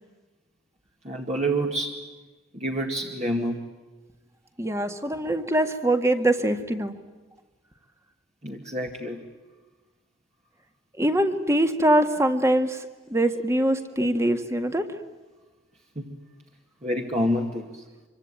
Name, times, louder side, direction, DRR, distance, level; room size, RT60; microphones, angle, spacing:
voice 1, 1.0-2.0 2.5-3.6 8.4-9.2 13.9-14.1 16.0-16.1 16.8-17.8, right 1 dB, 35° right, 1 dB, 2.3 m, -28 dB
voice 2, 4.6-6.9 11.0-12.8 13.1-14.9, right 1 dB, 15° right, 7 dB, 1.8 m, -23 dB
26.0 x 24.5 x 9.3 m, 1.2 s
head